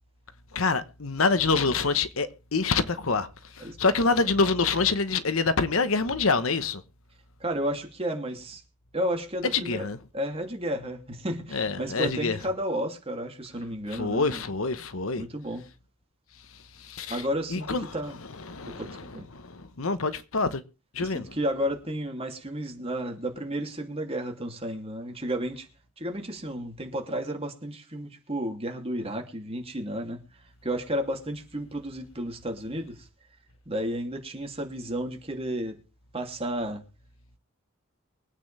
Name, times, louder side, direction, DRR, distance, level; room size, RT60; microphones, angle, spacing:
voice 1, 0.5-6.8 9.4-10.0 11.5-12.4 13.9-15.2 16.8-20.6 20.9-21.4, left 4 dB, 70° left, 1.1 m, -26 dB
voice 2, 7.4-8.6 8.9-9.9 10.1-14.4 15.2-15.6 17.1-18.2 18.6-19.3 21.0-25.7 26.0-30.2 30.6-33.1 33.7-35.8 36.1-36.8, equal, 25° right, 2.8 m, -32 dB
23.5 x 9.0 x 3.4 m
head